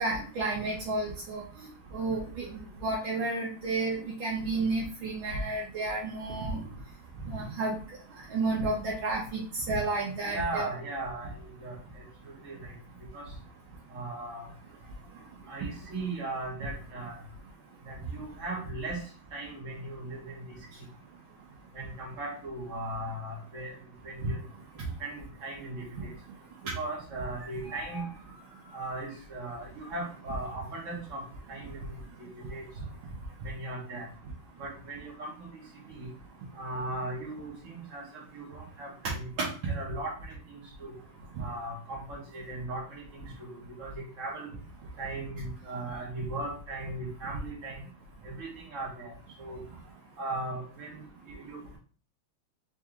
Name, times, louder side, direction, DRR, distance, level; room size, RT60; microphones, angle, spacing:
voice 1, 0.0-1.4 1.9-2.5 2.8-6.6 7.3-7.8 8.3-10.7 27.4-28.0, right 2 dB, 75° right, -5 dB, 1.8 m, -31 dB
voice 2, 10.2-11.8 12.4-12.7 13.1-13.3 13.9-14.5 15.5-17.2 17.9-19.0 19.3-20.4 21.7-23.7 24.0-24.4 25.0-26.1 26.7-28.1 28.7-31.2 31.5-32.6 33.4-34.1 34.6-35.6 35.9-36.1 36.6-40.9 41.4-44.5 45.0-47.8 48.2-49.1 49.4-49.6 50.2-51.8, right 2 dB, 40° right, -2 dB, 1.7 m, -38 dB
4.7 x 3.0 x 3.6 m, 0.39 s
omnidirectional pair, 2.2 m